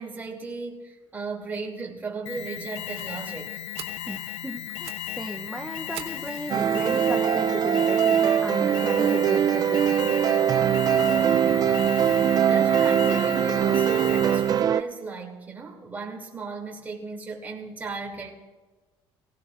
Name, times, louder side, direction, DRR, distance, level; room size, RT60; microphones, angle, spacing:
voice 1, 0.0-3.6 11.0-18.3, right 4 dB, 15° right, -1 dB, 2.7 m, -36 dB
Alarm, 2.3-14.7, left 12 dB, 80° left, 0.4 m, -36 dB
Fire, 2.9-3.1 3.5-3.6 3.8-4.1 4.6-5.1 5.3-5.4 5.9-7.3 7.9-8.0 8.5-8.6 8.9-9.0 9.3-9.4, right 12 dB, 80° right, 1.1 m, -43 dB
voice 2, 4.0-10.0 10.9-11.2, right 1 dB, ahead, 4 dB, 0.7 m, -35 dB
sound 1, 6.5-14.8, right 9 dB, 40° right, 0.4 m, -22 dB
23.5 x 16.5 x 2.5 m, 1.2 s
cardioid pair, 145°, 10 cm